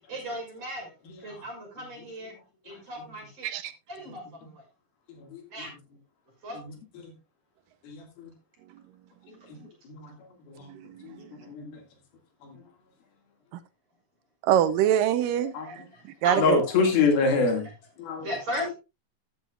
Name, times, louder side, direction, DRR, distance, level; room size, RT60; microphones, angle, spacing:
voice 1, 0.1-0.9 1.2-2.3 2.7-3.5 3.9-4.2 5.5-5.7 6.4-6.6 15.6-15.8 16.2-16.9 18.2-18.7, equal, 40° right, 6.3 m, -35 dB
voice 2, 1.1-1.4 4.1-4.2 5.1-5.7 6.6-7.1 7.8-8.3 9.9-10.1 10.5-10.7 11.0-11.8 12.4-12.6 15.5-15.7 16.4-17.7 18.0-18.3, left 4 dB, 80° left, 3.9 m, -27 dB
voice 3, 10.7-11.0 14.4-15.8 16.2-16.6, right 10 dB, 80° right, 2.2 m, -24 dB
14.0 x 9.5 x 2.4 m
omnidirectional pair, 4.3 m